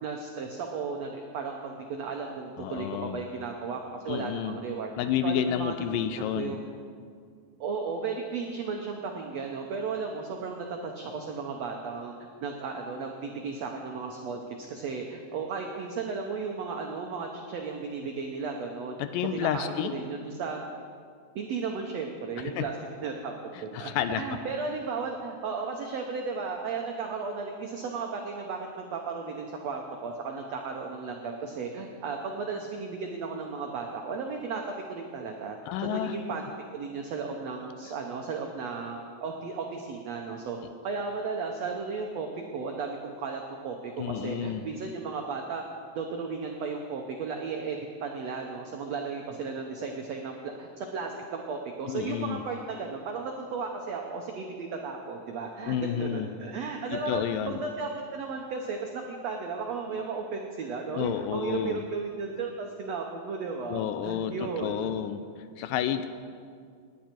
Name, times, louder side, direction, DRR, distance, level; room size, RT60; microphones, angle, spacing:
voice 1, 0.0-6.6 7.6-12.1 12.4-14.4 14.7-19.0 19.3-20.6 21.3-22.7 23.0-34.6 34.9-35.6 35.8-36.5 36.7-40.6 40.8-42.3 42.5-45.6 45.9-64.9, right 4 dB, 85° right, 2 dB, 1.4 m, -35 dB
voice 2, 2.6-3.2 4.1-4.6 5.0-6.6 19.0-20.0 22.4-22.7 23.7-24.2 35.7-36.2 44.0-44.6 51.9-52.4 55.7-56.3 56.9-57.6 60.9-61.8 63.7-65.2 65.6-66.1, left 9 dB, 80° left, 11 dB, 2.1 m, -30 dB
19.0 x 10.0 x 4.5 m, 2.1 s
omnidirectional pair, 4.2 m